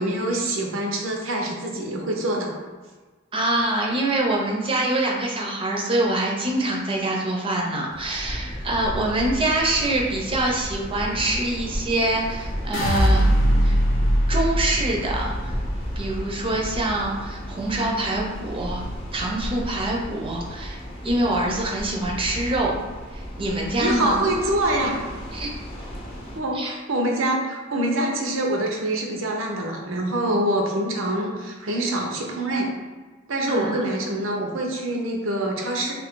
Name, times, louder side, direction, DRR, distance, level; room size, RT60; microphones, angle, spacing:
voice 1, 0.0-2.5 23.8-25.0 26.4-32.7 33.3-35.9, right 1 dB, 90° right, 1 dB, 0.6 m, -25 dB
voice 2, 3.3-13.3 13.6-13.8 14.3-15.6 16.0-18.8 19.1-22.7 23.1-24.2 25.3-25.6 26.5-26.7 33.5-33.8, right 1 dB, 25° right, -1 dB, 0.5 m, -25 dB
sound 1, 7.9-26.4, equal, 30° left, 0.6 m, -34 dB
sound 2, 12.7-18.9 19.3-19.9, equal, 70° left, 0.5 m, -23 dB
2.7 x 2.4 x 3.6 m, 1.3 s
head